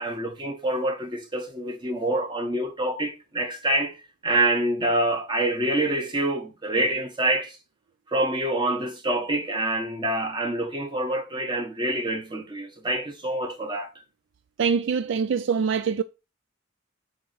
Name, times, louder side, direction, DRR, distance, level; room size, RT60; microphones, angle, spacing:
voice 1, 0.0-4.0 4.2-7.6 8.1-13.9, right 1 dB, 20° right, 1.5 m, -26 dB
voice 2, 14.6-16.0, right 6 dB, 60° right, 0.4 m, -24 dB
8.4 x 2.9 x 6.2 m
head